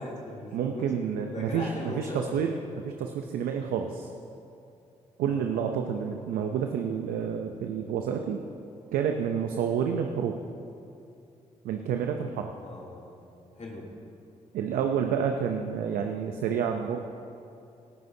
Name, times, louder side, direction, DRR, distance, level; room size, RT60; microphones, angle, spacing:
voice 1, 0.0-0.9 1.3-2.4 5.3-5.4 12.6-13.2 13.6-13.9, left 2 dB, 50° left, -4 dB, 2.8 m, -39 dB
voice 2, 0.5-2.5 2.8-4.1 5.2-8.4 8.9-10.4 11.6-12.5 14.5-17.0, right 7 dB, 90° right, 5 dB, 0.6 m, -29 dB
17.5 x 13.5 x 2.7 m, 2.7 s
supercardioid pair, 50°, 15 cm